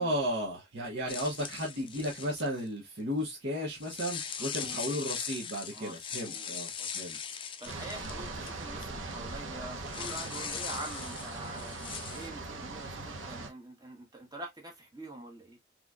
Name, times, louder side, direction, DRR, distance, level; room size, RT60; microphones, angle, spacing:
voice 1, 0.0-7.2, equal, 60° right, 1.2 m, -34 dB
sound 1, 1.1-2.7 3.7-8.8 9.1-9.2 9.9-12.3, left 7 dB, 25° left, 0.5 m, -40 dB
voice 2, 4.4-4.9 5.7-7.1 7.6-11.8 12.1-15.6, right 1 dB, 20° right, 1.1 m, -45 dB
sound 2, 7.7-13.5, right 3 dB, 85° right, 0.9 m, -40 dB
3.9 x 3.1 x 2.3 m
head